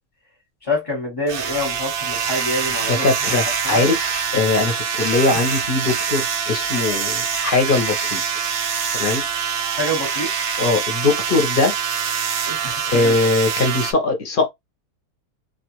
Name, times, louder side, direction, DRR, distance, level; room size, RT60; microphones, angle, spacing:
voice 1, 0.6-3.1 3.6-3.8 9.7-10.5 12.5-13.2, left 1 dB, 25° left, 1.0 m, -26 dB
sound 1, 1.3-13.9, right 7 dB, 80° right, 0.5 m, -24 dB
voice 2, 2.9-8.2 8.9-9.2 10.6-11.7 12.9-14.5, left 3 dB, 45° left, 0.8 m, -21 dB
2.4 x 2.4 x 3.0 m
omnidirectional pair, 1.6 m